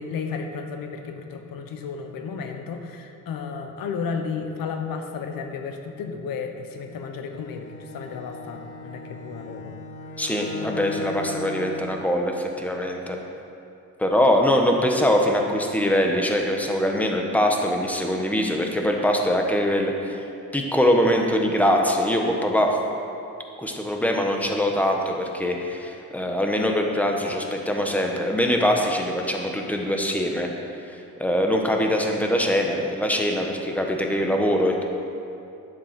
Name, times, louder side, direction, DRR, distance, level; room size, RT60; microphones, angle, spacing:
voice 1, 0.0-9.7, left 5 dB, 75° left, 5 dB, 1.2 m, -33 dB
Bowed string instrument, 7.3-12.0, left 2 dB, 35° left, 1.2 m, -36 dB
voice 2, 10.2-13.2 14.0-20.2 20.5-22.8 23.6-30.5 30.9-34.8, equal, 5° left, 1 dB, 1.2 m, -23 dB
11.0 x 7.3 x 6.0 m, 2.7 s
cardioid pair, 115°, 34 cm